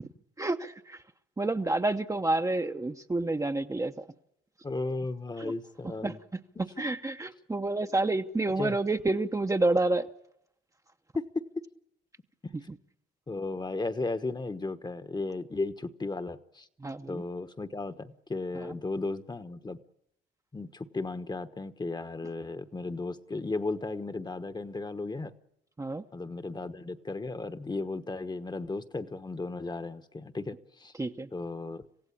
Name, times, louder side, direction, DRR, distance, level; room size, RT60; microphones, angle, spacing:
voice 1, 0.4-1.0 1.4-4.1 5.4-5.5 5.8-10.1 16.8-17.2 18.6-18.7 25.8-26.0 31.0-31.3, right 2 dB, 15° right, 6 dB, 0.9 m, -29 dB
voice 2, 4.6-6.2 6.6-6.7 8.6-8.8 11.1-11.4 13.3-16.7 17.1-19.8 20.5-25.3 26.1-30.9 31.3-31.9, left 3 dB, 20° left, 11 dB, 1.2 m, -35 dB
26.5 x 16.0 x 8.6 m, 0.79 s
cardioid pair, 90°, 20 cm